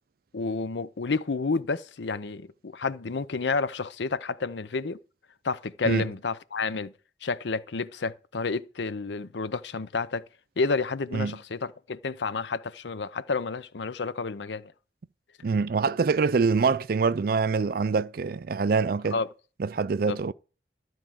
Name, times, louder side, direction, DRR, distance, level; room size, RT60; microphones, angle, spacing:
voice 1, 0.3-5.0 5.4-6.9 7.2-10.3 10.6-14.7 19.1-19.3 20.1-20.2, left 4 dB, 80° left, 0.7 m, -30 dB
voice 2, 15.4-19.2 19.6-20.3, right 4 dB, 55° right, 0.4 m, -25 dB
12.5 x 4.7 x 7.6 m
head